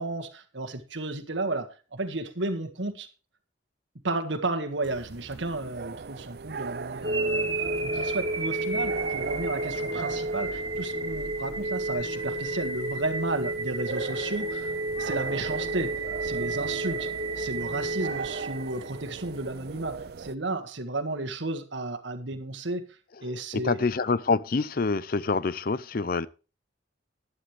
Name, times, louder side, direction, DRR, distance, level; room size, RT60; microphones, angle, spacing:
voice 1, 0.0-3.1 4.0-7.5 7.8-14.7 15.0-17.1 17.4-22.9 23.2-23.9, right 2 dB, 70° right, 1.7 m, -33 dB
sound 1, 4.8-20.3, right 5 dB, 55° right, 0.4 m, -39 dB
sound 2, 7.0-19.1, right 2 dB, 25° right, 1.6 m, -31 dB
voice 2, 23.3-26.3, left 4 dB, 50° left, 0.5 m, -27 dB
11.5 x 11.0 x 3.3 m
head